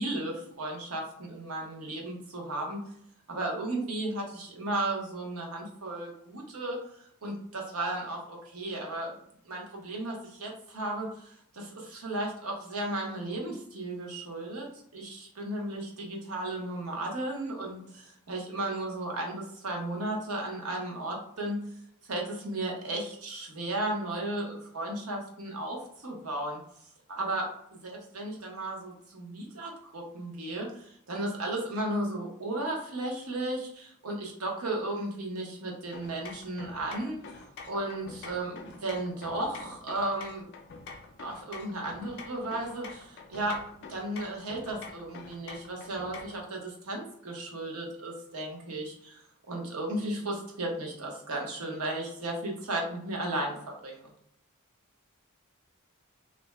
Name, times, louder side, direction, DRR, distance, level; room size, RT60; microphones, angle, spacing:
voice 1, 0.0-2.8 3.3-9.2 9.4-21.6 22.1-26.6 27.1-27.5 27.8-37.2 37.6-40.5 41.2-43.6 43.9-49.2 49.5-54.1, right 1 dB, 80° right, 0 dB, 0.8 m, -35 dB
sound 1, 35.9-46.5, left 4 dB, 55° left, 0.4 m, -47 dB
2.6 x 2.1 x 3.3 m, 0.71 s
head